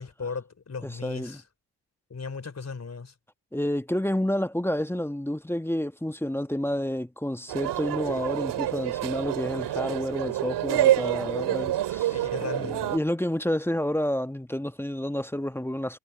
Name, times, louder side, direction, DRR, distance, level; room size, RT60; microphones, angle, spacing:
voice 1, 0.0-1.4 2.1-3.1 12.1-13.0, left 5 dB, 35° left, 4.6 m, -36 dB
voice 2, 0.8-1.4 3.5-12.2 12.6-16.0, left 1 dB, 5° left, 1.4 m, -29 dB
sound 1, 7.5-13.0, right 13 dB, 70° right, 2.5 m, -27 dB
hypercardioid pair, 50°, 43 cm